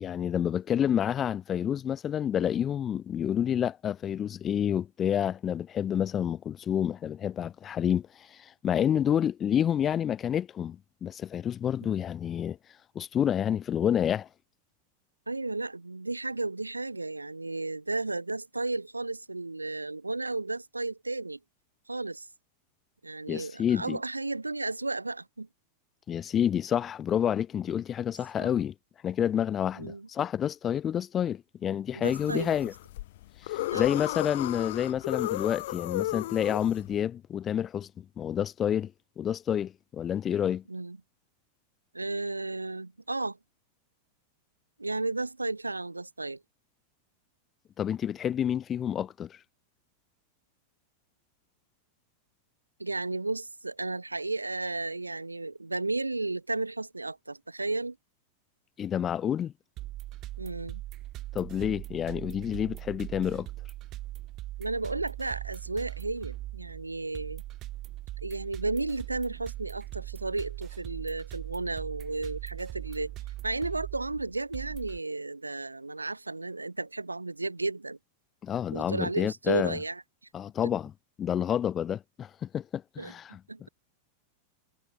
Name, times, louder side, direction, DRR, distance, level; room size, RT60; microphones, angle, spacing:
voice 1, 0.0-12.6 12.9-14.3 23.3-24.0 26.1-28.7 29.0-32.7 33.4-38.9 39.2-40.6 47.8-49.4 58.8-59.5 61.3-63.5 78.4-79.8 80.3-80.9 81.2-83.4, left 9 dB, 25° left, 2.3 m, -29 dB
voice 2, 15.3-21.4 21.9-22.3 23.0-25.5 28.4-28.5 29.8-30.1 31.9-32.6 33.7-33.9 40.7-41.0 41.9-43.4 44.8-46.4 52.8-58.0 60.4-60.8 64.6-67.4 68.2-73.2 73.4-78.0 78.7-80.0 83.0-83.1 83.5-83.7, right 2 dB, 80° right, 3.2 m, -33 dB
sound 1, 32.0-37.0, left 16 dB, 55° left, 1.0 m, -34 dB
sound 2, 59.8-75.0, right 16 dB, 35° right, 4.9 m, -40 dB
figure-of-eight pair, 90°, 0 cm